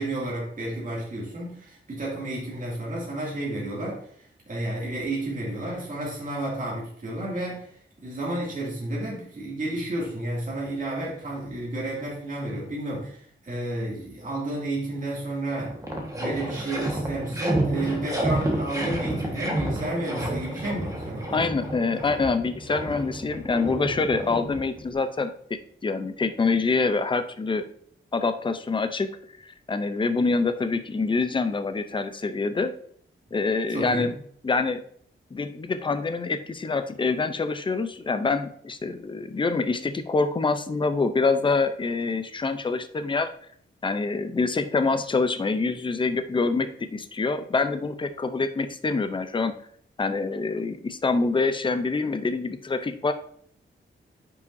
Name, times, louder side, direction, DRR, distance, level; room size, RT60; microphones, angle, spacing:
voice 1, 0.0-15.8 16.1-21.5 33.7-34.1, right 1 dB, 40° right, -5 dB, 2.4 m, -31 dB
sound 1, 15.5-24.9, right 1 dB, 15° right, 1.4 m, -30 dB
voice 2, 21.3-27.6 28.1-29.1 29.4-32.7 33.3-34.1 34.4-34.8 35.3-43.3 43.8-49.5 50.0-53.1, left 4 dB, 25° left, 10 dB, 0.5 m, -26 dB
9.4 x 5.7 x 2.6 m, 0.62 s
wide cardioid pair, 170°, 21 cm